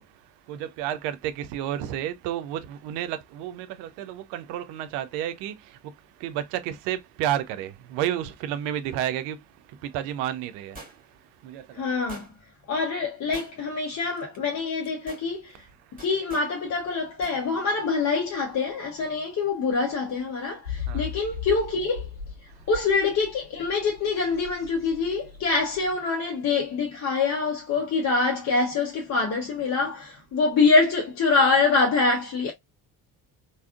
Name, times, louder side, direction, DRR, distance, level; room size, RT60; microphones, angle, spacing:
voice 1, 0.0-11.9 15.8-16.0 20.9-21.1 22.5-22.7, right 11 dB, 55° right, 0.6 m, -32 dB
sound 1, 10.8-11.3 12.1-12.6 13.3-13.8 14.2-14.4 14.8-15.3 16.0-16.5 17.2-17.4 17.7-17.8, right 2 dB, 20° right, 1.5 m, -45 dB
voice 2, 11.7-12.3 12.7-15.6 16.0-22.1 22.7-32.5, left 4 dB, 35° left, 0.7 m, -25 dB
sound 2, 20.6-26.0, left 7 dB, 90° left, 0.9 m, -38 dB
3.4 x 2.2 x 2.3 m
figure-of-eight pair, 45°, 47 cm